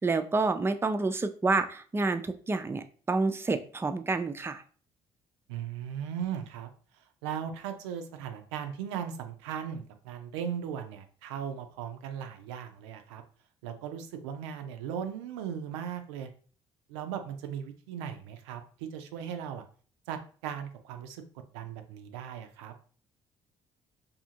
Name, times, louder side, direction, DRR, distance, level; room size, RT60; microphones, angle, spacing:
voice 1, 0.0-4.6, right 3 dB, 15° right, 9 dB, 0.4 m, -29 dB
voice 2, 5.5-13.2 13.6-16.3 16.9-19.6 20.1-21.2 21.5-22.7, right 8 dB, 85° right, 7 dB, 0.4 m, -38 dB
2.7 x 2.5 x 2.7 m, 0.41 s
hypercardioid pair, 55°, 14 cm